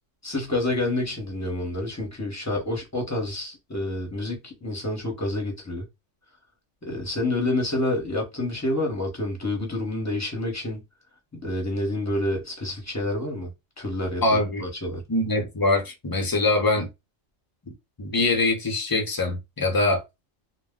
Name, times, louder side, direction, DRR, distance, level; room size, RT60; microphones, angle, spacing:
voice 1, 0.2-5.8 6.8-10.8 11.3-13.5 13.8-15.0, left 1 dB, 15° left, 0.8 m, -28 dB
voice 2, 14.2-14.6 15.1-16.9 18.0-20.0, left 2 dB, 30° left, 0.4 m, -23 dB
2.2 x 2.2 x 3.5 m
omnidirectional pair, 1.3 m